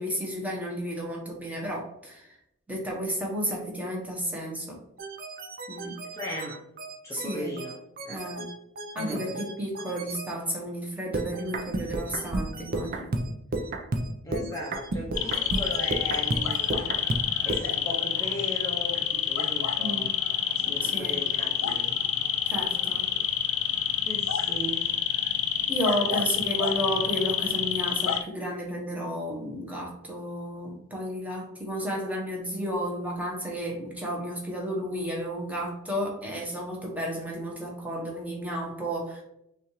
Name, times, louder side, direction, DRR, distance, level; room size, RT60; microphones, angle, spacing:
voice 1, 0.0-2.3 2.7-4.8 5.7-6.0 7.1-7.5 8.1-8.4 8.9-9.3 9.6-13.2 14.4-14.5 19.8-20.1 20.8-21.2 22.4-23.1 25.7-39.2, equal, 5° right, -2 dB, 0.9 m, -32 dB
sound 1, 5.0-10.3 11.1-17.7, right 2 dB, 45° right, 0.5 m, -33 dB
voice 2, 6.1-6.6 7.0-7.8 8.0-8.2 9.0-9.4 14.2-16.8 17.5-20.1 20.7-22.0 24.1-24.9, equal, 15° left, -4 dB, 0.6 m, -37 dB
sound 2, 15.2-28.2, left 9 dB, 80° left, 0.5 m, -28 dB
5.8 x 2.5 x 3.0 m, 0.81 s
head